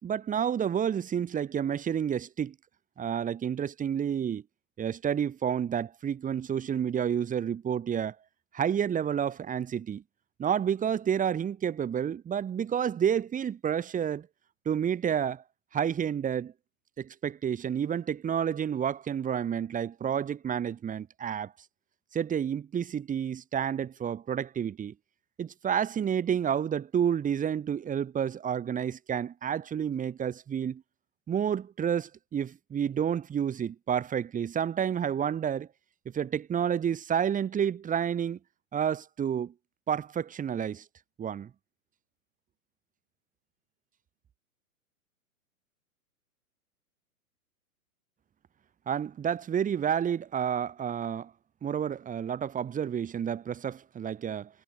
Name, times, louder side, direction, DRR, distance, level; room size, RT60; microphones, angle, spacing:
voice 1, 0.0-2.5 3.0-4.4 4.8-8.1 8.5-10.0 10.4-14.3 14.6-15.4 15.7-16.5 17.0-21.5 22.1-24.9 25.4-30.8 31.3-35.7 36.0-38.4 38.7-39.5 39.9-40.8 41.2-41.5 48.9-51.3 51.6-54.5, right 8 dB, 20° right, 5.1 m, -30 dB
hypercardioid pair, 115°, 43 cm